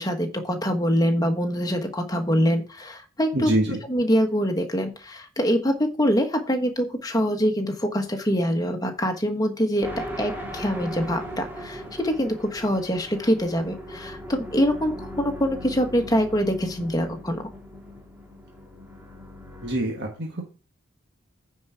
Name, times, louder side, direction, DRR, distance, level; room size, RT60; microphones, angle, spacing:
voice 1, 0.0-3.5 3.9-9.9 10.2-17.4, equal, 20° left, 5 dB, 1.4 m, -24 dB
voice 2, 3.3-3.8 19.6-20.4, right 1 dB, 55° right, 1 dB, 1.5 m, -25 dB
sound 1, 9.8-19.8, equal, 10° right, 1.7 m, -39 dB
9.5 x 4.7 x 5.8 m, 0.33 s
head